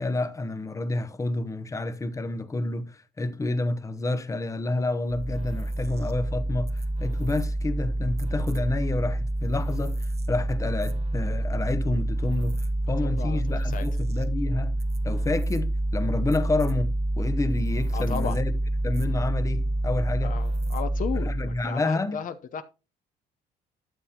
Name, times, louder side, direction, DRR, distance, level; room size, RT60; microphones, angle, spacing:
voice 1, 0.0-14.7 15.0-18.5 18.8-20.4 21.2-22.2, left 2 dB, 20° left, 0.9 m, -29 dB
sound 1, 5.1-21.6, right 1 dB, 40° right, 1.3 m, -27 dB
voice 2, 13.0-13.9 17.9-18.4 20.2-21.3 21.6-22.6, left 7 dB, 50° left, 0.8 m, -34 dB
12.5 x 7.0 x 2.9 m
cardioid pair, 110°, 17 cm